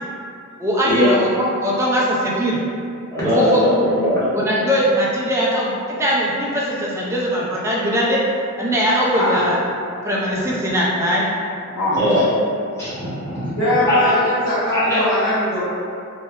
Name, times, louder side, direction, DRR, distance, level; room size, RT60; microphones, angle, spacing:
voice 1, 0.6-2.6 3.2-3.9 4.3-8.2 8.6-9.6 10.0-11.3, equal, 10° right, -5 dB, 0.3 m, -20 dB
voice 2, 3.1-4.5 10.4-10.5 11.9-12.2 12.8-13.5 13.9-14.1 14.7-15.0, left 1 dB, 15° left, -13 dB, 0.9 m, -20 dB
voice 3, 13.4-15.6, left 1 dB, 80° left, -12 dB, 0.6 m, -20 dB
2.7 x 2.1 x 2.3 m, 2.5 s
head